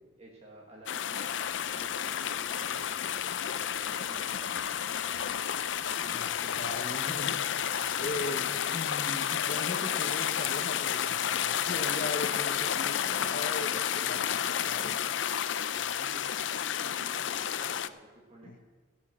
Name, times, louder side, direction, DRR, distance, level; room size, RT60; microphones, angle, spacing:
voice 1, 0.2-5.4 7.8-8.1 15.7-18.6, right 1 dB, 35° right, -3 dB, 1.5 m, -53 dB
sound 1, 0.9-17.9, left 9 dB, 85° left, 0.5 m, -31 dB
sound 2, 1.2-8.3, left 1 dB, 10° left, 3.3 m, -55 dB
sound 3, 4.1-7.9 8.3-8.5 8.9-10.1 10.5-11.1 11.5-11.7 12.1-12.7 13.1-13.3 13.7-14.3 14.7-14.9 15.3-15.9, right 1 dB, 65° right, 2.2 m, -62 dB
voice 2, 6.0-15.1 18.5-18.6, left 2 dB, 50° left, 5 dB, 0.9 m, -39 dB
16.0 x 6.2 x 7.6 m, 1.4 s
head